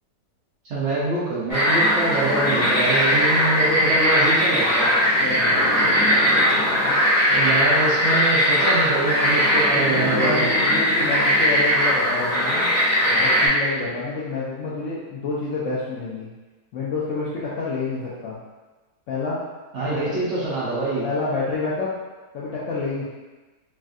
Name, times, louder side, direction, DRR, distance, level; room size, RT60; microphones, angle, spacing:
voice 1, 0.6-4.9 7.3-10.4 19.7-21.0, right 2 dB, 60° right, -8 dB, 0.8 m, -25 dB
sound 1, 1.5-13.5, equal, 15° left, 0.7 m, -19 dB
voice 2, 5.2-6.0 6.7-6.9 9.7-12.7 13.1-16.3 16.7-18.4 19.1-19.4 19.9-20.2 21.0-21.9 22.3-23.0, left 3 dB, 70° left, -7 dB, 0.7 m, -28 dB
3.3 x 2.3 x 2.5 m, 1.2 s
omnidirectional pair, 1.7 m